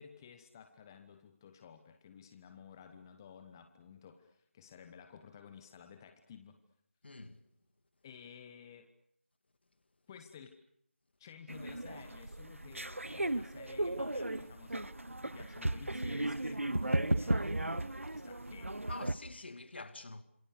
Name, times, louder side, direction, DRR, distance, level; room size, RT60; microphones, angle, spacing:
voice 1, 0.0-6.6 8.0-8.9 10.1-10.6 11.2-15.0 15.2-18.7, left 7 dB, 15° left, 1.0 m, -54 dB
voice 2, 7.0-7.5 18.9-20.2, left 3 dB, 55° left, 2.3 m, -46 dB
sound 1, 11.5-19.1, right 1 dB, 80° right, 1.2 m, -35 dB
27.5 x 27.0 x 6.7 m
figure-of-eight pair, 160°, 7 cm